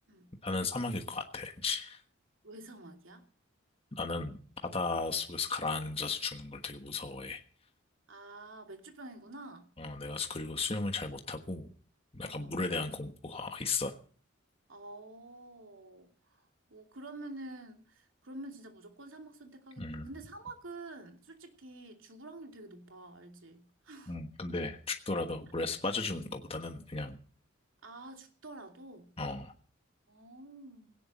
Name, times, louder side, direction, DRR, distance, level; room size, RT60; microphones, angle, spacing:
voice 1, 0.4-2.0 4.0-4.4 4.6-7.4 9.8-11.7 12.1-13.9 19.8-20.1 24.1-27.2 29.2-29.5, left 3 dB, 30° left, 1.3 m, -35 dB
voice 2, 2.4-3.2 8.1-9.7 12.2-12.6 14.7-16.1 16.7-24.1 27.8-29.1 30.1-30.9, right 2 dB, 75° right, 2.8 m, -48 dB
17.5 x 16.5 x 4.3 m
head